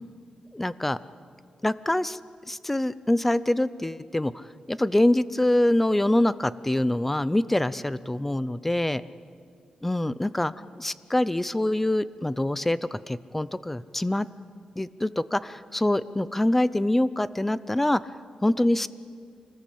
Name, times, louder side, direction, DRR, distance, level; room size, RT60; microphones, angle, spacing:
voice 1, 0.5-1.0 1.6-2.2 2.5-9.0 9.8-10.5 10.8-14.3 14.8-18.1 18.4-18.9, left 1 dB, 10° left, 16 dB, 0.6 m, -25 dB
26.0 x 19.5 x 8.5 m, 2.1 s
wide cardioid pair, 145°, 2 cm